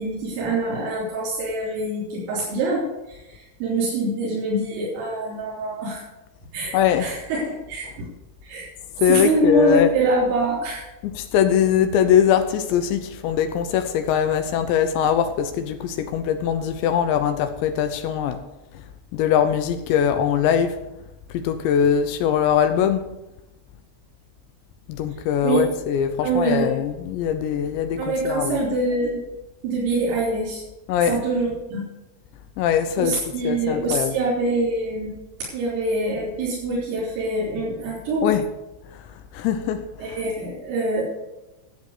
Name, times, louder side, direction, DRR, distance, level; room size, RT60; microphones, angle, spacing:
voice 1, 0.0-6.0 6.5-8.1 8.4-8.7 9.1-10.8 25.4-25.7 26.2-26.7 28.0-29.2 29.6-30.6 31.1-31.8 33.0-35.1 35.5-38.3 40.0-41.0, right 2 dB, 85° right, -6 dB, 6.2 m, -24 dB
voice 2, 6.7-7.1 9.0-9.9 11.0-18.4 19.1-20.8 21.3-23.1 24.9-28.6 30.9-31.2 32.6-33.1 33.4-34.2 38.2-38.4 39.3-39.8, left 9 dB, 80° left, 9 dB, 2.7 m, -21 dB
12.5 x 8.0 x 6.6 m, 0.98 s
omnidirectional pair, 5.8 m